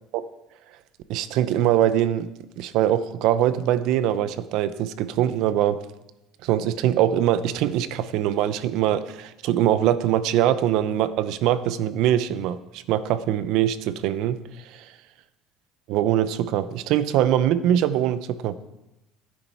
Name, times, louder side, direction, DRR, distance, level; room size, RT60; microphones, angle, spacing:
voice 1, 1.1-2.3 2.6-5.8 6.4-14.4 14.7-14.8 15.9-18.6, right 11 dB, 65° right, 14 dB, 0.8 m, -22 dB
14.5 x 9.8 x 4.6 m, 0.91 s
cardioid pair, 130°, 0 cm